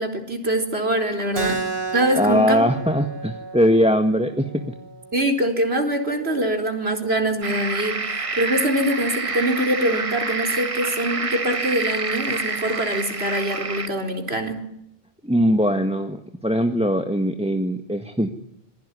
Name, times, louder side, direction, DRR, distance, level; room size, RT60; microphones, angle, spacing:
voice 1, 0.0-2.7 5.1-14.6, right 1 dB, 80° right, 5 dB, 4.6 m, -24 dB
Keyboard (musical), 1.3-6.4, right 4 dB, 60° right, 3.7 m, -32 dB
voice 2, 2.1-4.7 15.2-18.3, equal, 5° right, 7 dB, 1.6 m, -21 dB
sound 1, 7.4-13.9, right 3 dB, 35° right, 1.3 m, -27 dB
26.5 x 21.0 x 9.9 m, 0.75 s
omnidirectional pair, 1.0 m